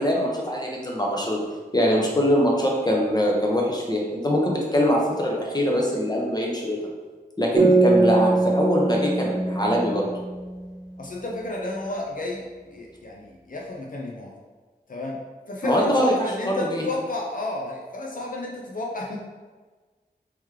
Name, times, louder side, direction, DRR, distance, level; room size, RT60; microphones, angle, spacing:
voice 1, 0.0-1.4 1.7-6.9 7.4-10.1 15.6-16.1 16.4-16.8, equal, 25° left, -2 dB, 0.9 m, -23 dB
sound 1, 7.6-11.0, right 3 dB, 40° right, 1.1 m, -22 dB
voice 2, 11.0-14.3 14.9-15.2 15.5-19.2, left 2 dB, 55° left, -2 dB, 0.6 m, -32 dB
3.1 x 3.1 x 3.6 m, 1.3 s
wide cardioid pair, 55°, 17 cm